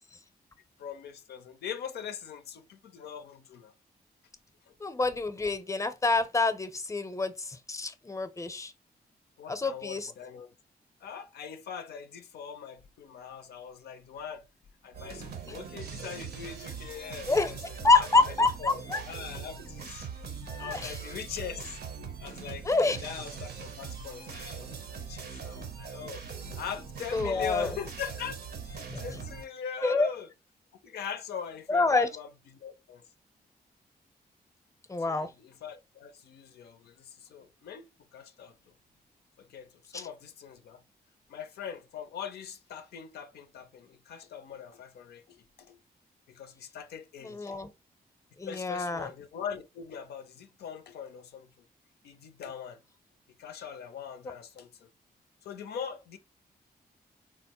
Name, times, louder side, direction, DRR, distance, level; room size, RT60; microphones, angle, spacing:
voice 1, 0.8-3.7 9.4-10.5 11.0-14.4 14.8-20.1 20.6-21.8 22.2-26.3 26.6-28.4 28.7-30.3 30.8-33.0 35.0-38.5 39.4-40.8 41.3-45.8 46.3-47.6 48.5-51.5 52.0-52.8 53.4-54.9 55.4-56.2, left 8 dB, 90° left, 0.4 m, -41 dB
voice 2, 4.8-8.7 9.5-10.1 17.3-17.5 17.8-19.0 20.4-21.0 22.7-23.0 27.1-27.8 28.9-29.0 29.8-30.1 31.7-32.1 34.9-35.3 39.9-40.0 47.2-47.7 48.4-49.1, left 3 dB, 20° left, 0.6 m, -27 dB
sound 1, 14.9-29.4, right 6 dB, 75° right, 0.8 m, -41 dB
3.9 x 2.1 x 2.9 m
cardioid pair, 65°, 16 cm